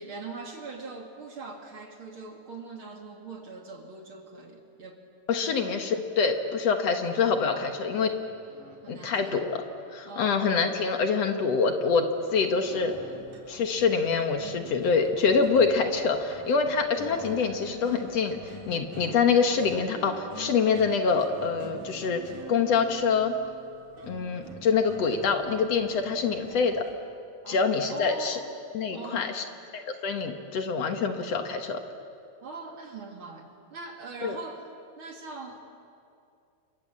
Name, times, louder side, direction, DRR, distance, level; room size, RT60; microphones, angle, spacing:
voice 1, 0.0-5.0 5.4-5.7 8.8-9.4 10.0-10.5 27.4-27.6 27.9-28.5 28.9-29.3 32.4-34.6 35.0-35.6, right 3 dB, 45° right, 3 dB, 2.9 m, -41 dB
voice 2, 5.3-8.2 8.9-9.6 9.9-12.9 13.5-23.4 24.1-26.8 27.5-28.4 28.7-29.4 29.7-31.8 34.2-34.4, left 5 dB, 60° left, 6 dB, 2.4 m, -25 dB
sound 1, 7.3-26.9, right 2 dB, 80° right, 5.0 m, -46 dB
29.5 x 26.0 x 7.6 m, 2.5 s
omnidirectional pair, 3.4 m